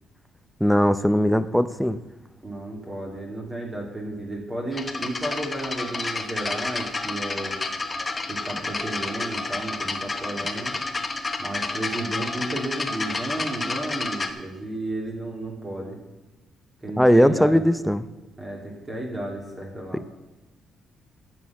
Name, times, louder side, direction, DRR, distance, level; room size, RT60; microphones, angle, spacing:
voice 1, 0.6-2.0 17.0-18.0 19.9-20.0, equal, ahead, 13 dB, 0.5 m, -19 dB
voice 2, 2.4-7.6 8.3-10.8 11.4-16.0 16.8-17.6 18.4-20.0, right 1 dB, 25° right, -1 dB, 2.7 m, -33 dB
sound 1, 4.7-14.3, left 3 dB, 25° left, 1.1 m, -30 dB
13.5 x 6.3 x 5.9 m, 1.1 s
cardioid pair, 90°, 0 cm